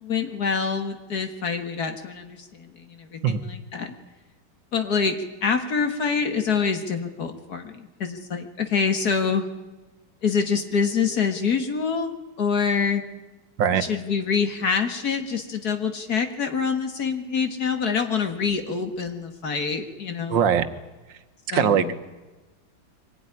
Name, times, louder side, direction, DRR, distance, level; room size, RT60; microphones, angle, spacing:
voice 1, 0.0-3.9 4.7-9.5 10.2-13.0 13.9-20.4 21.5-21.8, left 5 dB, 55° left, 6 dB, 2.1 m, -26 dB
voice 2, 20.3-20.7 21.1-21.2 21.5-21.9, right 8 dB, 75° right, 10 dB, 1.8 m, -21 dB
23.5 x 17.0 x 9.9 m, 1.2 s
omnidirectional pair, 2.1 m